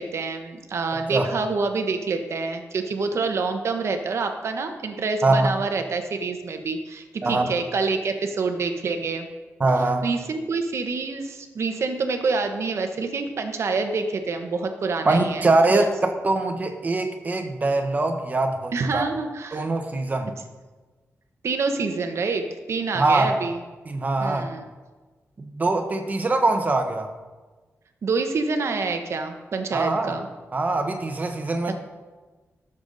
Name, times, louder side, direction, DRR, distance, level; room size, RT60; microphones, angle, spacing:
voice 1, 0.0-9.3 10.0-15.8 18.7-19.6 21.4-23.6 24.2-24.6 28.0-30.3, right 4 dB, 60° right, 6 dB, 1.1 m, -27 dB
voice 2, 7.2-7.5 9.6-10.1 15.0-15.9 16.2-19.1 19.5-20.3 22.9-23.4 23.9-24.5 25.4-27.1 29.7-30.2 30.5-31.8, right 2 dB, 30° right, 5 dB, 1.2 m, -23 dB
17.0 x 7.1 x 4.1 m, 1.3 s
wide cardioid pair, 140°, 5 cm